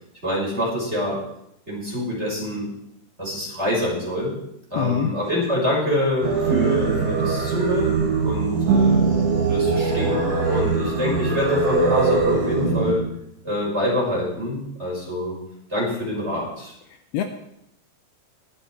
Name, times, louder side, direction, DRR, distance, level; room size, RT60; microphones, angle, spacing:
voice 1, 0.2-1.2 1.7-2.7 3.2-4.3 4.7-9.0 9.5-13.0 13.4-15.3 15.7-16.7, left 1 dB, 15° right, -4 dB, 5.3 m, -25 dB
voice 2, 4.7-5.1 16.9-17.2, left 9 dB, 90° left, 7 dB, 2.2 m, -25 dB
Singing, 6.2-12.9, right 4 dB, 35° right, 3.2 m, -23 dB
sound 1, 6.2-12.2, right 5 dB, 60° right, 2.1 m, -26 dB
23.0 x 8.2 x 4.7 m, 0.78 s
omnidirectional pair, 5.6 m